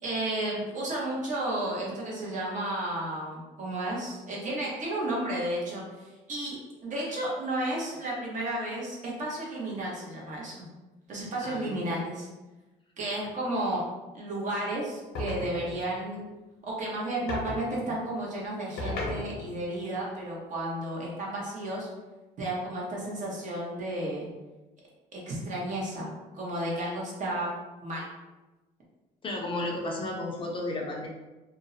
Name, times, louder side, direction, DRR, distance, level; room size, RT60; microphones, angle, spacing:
voice 1, 0.0-10.7 11.1-12.3 13.0-13.8 14.1-16.2 16.6-21.9 22.4-24.3 25.1-27.5 27.8-28.1, right 1 dB, 50° right, -4 dB, 0.9 m, -32 dB
voice 2, 11.4-11.8 29.2-31.1, left 2 dB, 30° left, -1 dB, 0.5 m, -33 dB
sound 1, 15.2-15.9 17.3-17.6 18.8-19.6, left 1 dB, 75° left, 0.7 m, -34 dB
2.5 x 2.0 x 2.6 m, 1.1 s
cardioid pair, 110°, 17 cm